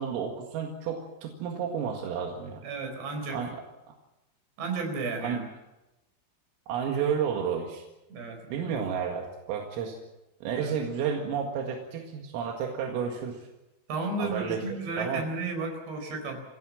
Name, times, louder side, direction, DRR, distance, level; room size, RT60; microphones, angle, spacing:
voice 1, 0.0-2.6 3.3-3.6 5.2-5.4 6.7-7.8 8.5-10.0 10.4-13.5 14.2-15.3, right 7 dB, 80° right, 1 dB, 4.6 m, -31 dB
voice 2, 2.6-3.4 4.6-5.5 8.1-8.7 10.6-10.7 13.9-16.4, right 3 dB, 55° right, 4 dB, 6.5 m, -33 dB
28.5 x 16.5 x 7.4 m, 0.98 s
omnidirectional pair, 5.9 m